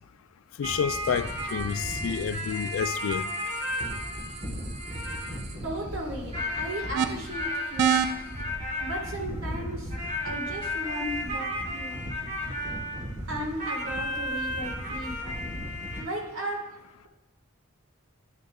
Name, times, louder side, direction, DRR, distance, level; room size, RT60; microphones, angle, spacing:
voice 1, 0.6-3.3, left 7 dB, 70° left, 0.3 m, -29 dB
sound 1, 0.6-16.0, left 1 dB, 30° right, 1.2 m, -33 dB
sound 2, 0.9-8.4, right 8 dB, 50° right, 0.4 m, -34 dB
voice 2, 5.6-8.3 8.8-9.9 10.2-12.1 13.3-15.5 16.0-17.1, right 1 dB, 65° right, 1.6 m, -36 dB
11.0 x 6.4 x 2.3 m
head